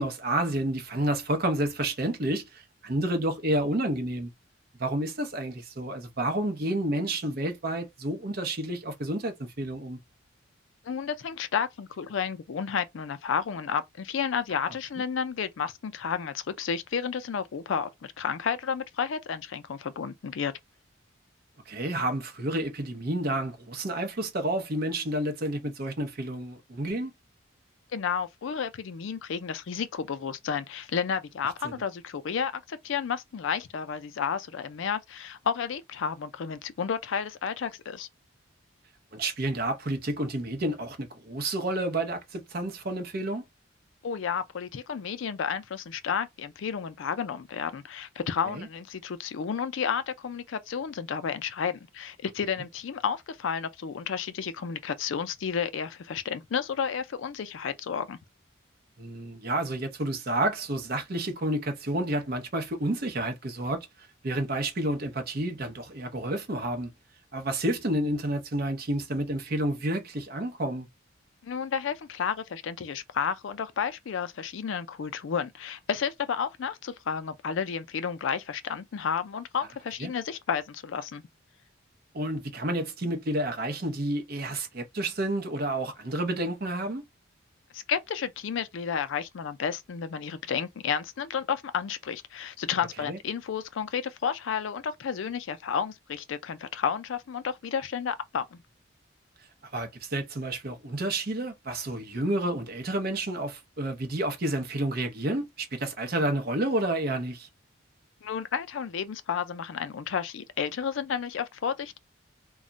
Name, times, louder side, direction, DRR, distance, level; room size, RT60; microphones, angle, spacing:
voice 1, 0.0-4.3 4.8-10.0 21.7-27.1 31.6-31.7 39.1-43.4 48.5-48.7 59.0-63.9 64.2-66.9 67.3-70.9 80.0-80.1 82.1-87.0 93.1-93.2 99.7-107.5, right 1 dB, 50° right, 0.7 m, -30 dB
voice 2, 10.8-20.5 27.9-38.1 44.0-58.2 71.4-81.2 87.7-98.6 108.2-112.0, left 7 dB, 70° left, 0.4 m, -31 dB
2.3 x 2.1 x 3.8 m
head